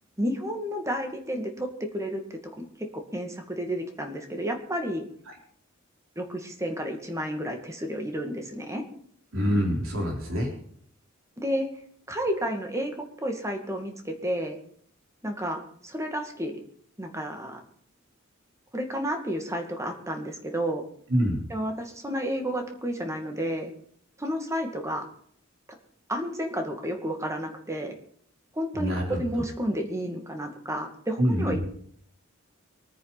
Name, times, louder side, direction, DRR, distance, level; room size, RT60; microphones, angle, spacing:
voice 1, 0.2-2.7 2.9-5.0 6.2-8.8 11.4-11.7 12.1-14.6 15.2-16.6 17.0-17.6 18.7-20.8 21.5-23.7 24.2-25.1 26.1-27.9 28.5-31.7, equal, 15° right, 4 dB, 2.1 m, -31 dB
voice 2, 9.3-10.5 21.1-21.4 28.7-29.2 31.2-31.5, equal, 75° right, 1 dB, 4.0 m, -25 dB
24.0 x 9.7 x 4.1 m, 0.62 s
head